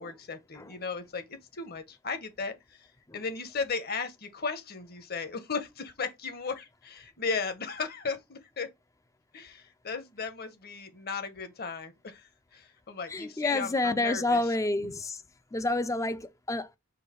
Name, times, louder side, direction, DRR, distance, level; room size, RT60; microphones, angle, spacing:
voice 1, 0.0-2.9 3.1-8.7 9.3-14.5 14.9-15.0, left 4 dB, 45° left, 1.0 m, -36 dB
voice 2, 13.1-15.2 15.5-16.8, left 2 dB, 15° left, 0.4 m, -29 dB
6.2 x 2.6 x 2.9 m
head